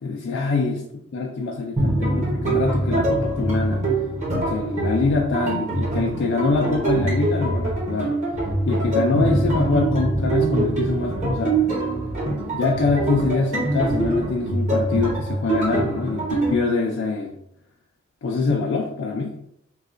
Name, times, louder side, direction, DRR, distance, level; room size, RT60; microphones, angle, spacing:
voice 1, 0.0-0.8 1.1-3.8 4.3-8.2 8.7-11.6 12.5-17.3 18.2-19.4, left 3 dB, 60° left, 0 dB, 0.4 m, -24 dB
sound 1, 1.8-16.5, right 2 dB, 35° right, 1.0 m, -24 dB
3.1 x 2.3 x 3.7 m, 0.72 s
head